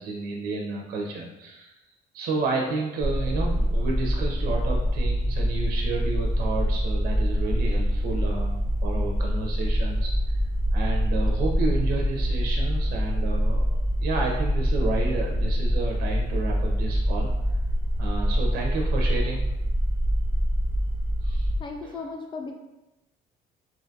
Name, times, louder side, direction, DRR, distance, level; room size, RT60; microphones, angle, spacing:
voice 1, 0.0-1.8 2.1-10.1 10.7-13.6 14.0-17.3 18.0-19.4 21.2-21.5 21.8-22.0, right 3 dB, 65° right, 0 dB, 0.4 m, -31 dB
sound 1, 3.0-21.6, equal, 80° left, 0.9 m, -25 dB
voice 2, 21.6-22.5, left 4 dB, 30° left, 2 dB, 0.4 m, -35 dB
2.6 x 2.3 x 2.6 m, 0.95 s
cardioid pair, 110°, 17 cm